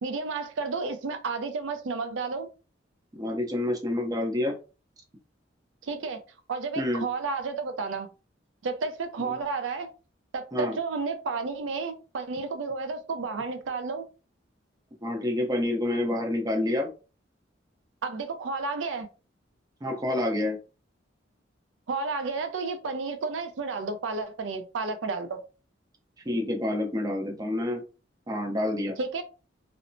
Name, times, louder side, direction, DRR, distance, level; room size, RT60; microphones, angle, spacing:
voice 1, 0.0-2.5 5.8-6.2 6.5-8.1 8.6-9.9 10.3-14.0 18.0-19.1 21.9-25.4 29.0-29.2, right 4 dB, 85° right, 0.5 m, -31 dB
voice 2, 3.2-4.5 6.8-7.0 9.2-9.5 10.5-10.8 15.0-16.9 19.8-20.6 26.3-27.8 28.3-29.0, left 1 dB, 20° right, 0.5 m, -28 dB
3.0 x 2.0 x 2.5 m
head